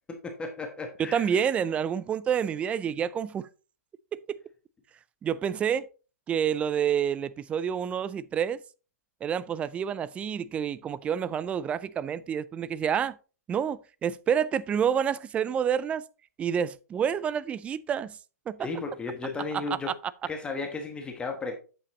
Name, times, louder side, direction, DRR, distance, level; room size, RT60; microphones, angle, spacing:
voice 1, 0.1-1.4 18.6-19.9 20.2-21.6, left 3 dB, 10° left, 1.2 m, -35 dB
voice 2, 1.0-3.5 4.1-4.4 5.2-5.9 6.3-8.6 9.2-13.1 13.5-16.0 16.4-18.2 18.5-18.6, right 8 dB, 15° right, 0.4 m, -28 dB
8.6 x 7.4 x 3.0 m
hypercardioid pair, 130°, 9 cm